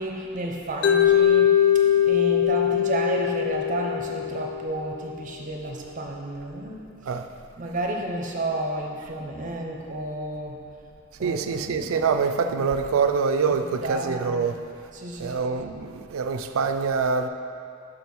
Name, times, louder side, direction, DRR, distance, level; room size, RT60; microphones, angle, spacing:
voice 1, 0.0-1.5 1.8-6.8 7.6-10.6 11.2-11.9 12.5-12.6 13.5-14.6 14.9-15.6, right 1 dB, 40° right, 1 dB, 0.7 m, -31 dB
Mallet percussion, 0.8-4.9, left 10 dB, 60° left, 0.5 m, -21 dB
voice 2, 11.2-14.6 15.2-17.3, right 5 dB, 85° right, 7 dB, 0.4 m, -25 dB
6.8 x 4.6 x 5.4 m, 2.5 s
head